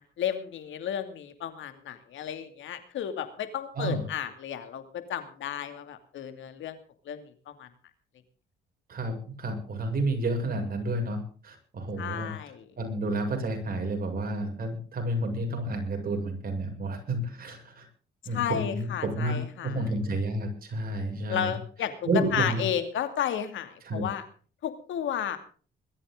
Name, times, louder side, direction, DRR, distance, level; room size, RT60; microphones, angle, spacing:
voice 1, 0.2-6.8 7.1-7.7 12.0-12.7 18.3-19.8 21.3-24.2 24.6-25.4, left 9 dB, 75° left, 9 dB, 2.6 m, -33 dB
voice 2, 8.9-11.2 11.4-12.3 12.8-17.9 18.3-21.6 22.1-22.6 23.9-24.0, right 1 dB, 45° right, 3 dB, 6.9 m, -30 dB
21.5 x 13.5 x 3.9 m, 0.40 s
cardioid pair, 90°, 20 cm